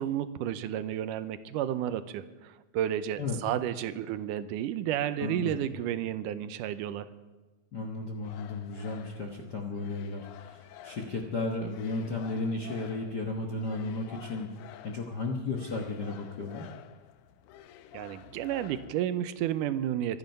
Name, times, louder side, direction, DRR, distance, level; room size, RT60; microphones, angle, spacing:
voice 1, 0.0-7.1 17.9-20.2, right 11 dB, 85° right, 12 dB, 2.3 m, -32 dB
voice 2, 5.2-5.6 7.7-14.5 14.8-16.7, left 3 dB, 60° left, 2 dB, 1.1 m, -34 dB
sound 1, 8.2-19.0, left 11 dB, 80° left, 2.1 m, -50 dB
24.5 x 9.2 x 5.4 m, 1.2 s
omnidirectional pair, 3.6 m